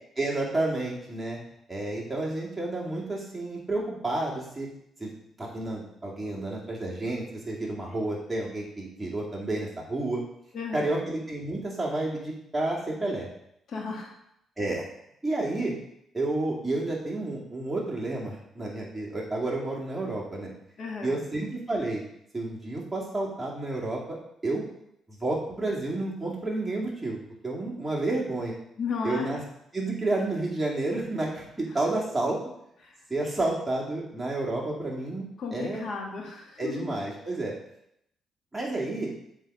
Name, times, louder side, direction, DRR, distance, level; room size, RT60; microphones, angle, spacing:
voice 1, 0.2-1.4 1.7-4.7 5.0-5.1 5.4-10.2 10.7-13.3 14.6-14.8 15.2-15.7 16.1-20.5 21.0-22.0 22.3-24.0 24.4-24.6 25.1-28.5 29.0-29.4 29.7-32.4 33.1-35.3 35.5-35.9 36.6-37.5 38.5-39.1, right 2 dB, 10° right, -4 dB, 2.3 m, -30 dB
voice 2, 10.5-11.0 13.7-14.1 20.8-21.2 28.8-29.4 32.8-32.9 35.4-36.9, left 4 dB, 55° left, 0 dB, 1.7 m, -34 dB
7.4 x 3.9 x 4.9 m, 0.76 s
cardioid pair, 90°, 0 cm